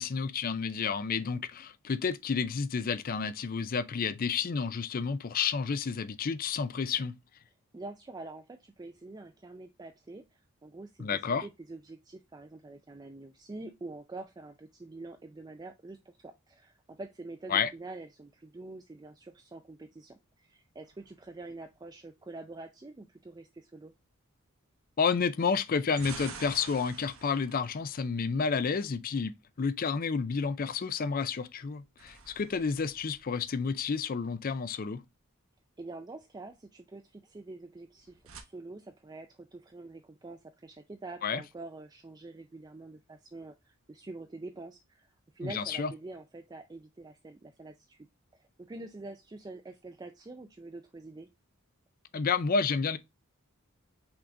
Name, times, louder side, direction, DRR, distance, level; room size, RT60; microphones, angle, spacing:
voice 1, 0.0-7.1 11.0-11.5 17.5-17.7 25.0-35.0 41.2-41.4 45.4-45.9 52.1-53.0, left 5 dB, 40° left, 0.4 m, -30 dB
voice 2, 7.7-23.9 35.8-48.1 48.3-51.3, right 2 dB, 20° right, 0.4 m, -46 dB
sound 1, 20.8-21.9 25.5-28.8 31.6-34.1 37.8-38.4, right 5 dB, 70° right, 0.9 m, -49 dB
5.8 x 3.6 x 2.5 m
head